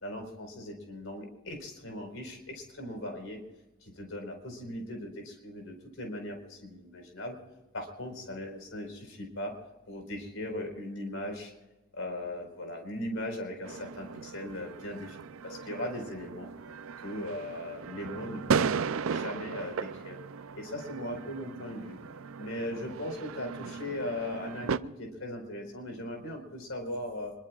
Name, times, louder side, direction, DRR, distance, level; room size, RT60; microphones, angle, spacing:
voice 1, 0.0-3.4 3.8-7.4 7.7-9.5 9.9-11.5 12.0-16.5 17.0-20.2 20.5-22.0 22.4-27.3, left 1 dB, 70° left, 3 dB, 4.7 m, -39 dB
sound 1, 13.6-24.8, right 5 dB, 70° right, 0.5 m, -36 dB
25.5 x 22.5 x 2.4 m, 1.0 s
head